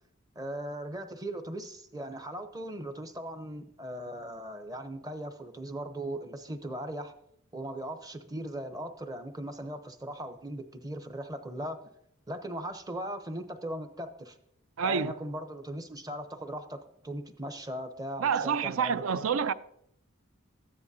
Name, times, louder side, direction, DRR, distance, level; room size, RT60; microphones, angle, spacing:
voice 1, 0.3-7.1 7.5-11.9 12.3-14.4 14.8-19.2, right 1 dB, 20° right, 0.7 m, -39 dB
voice 2, 14.8-15.1 18.2-19.5, right 6 dB, 70° right, 0.4 m, -28 dB
13.5 x 9.8 x 2.7 m
head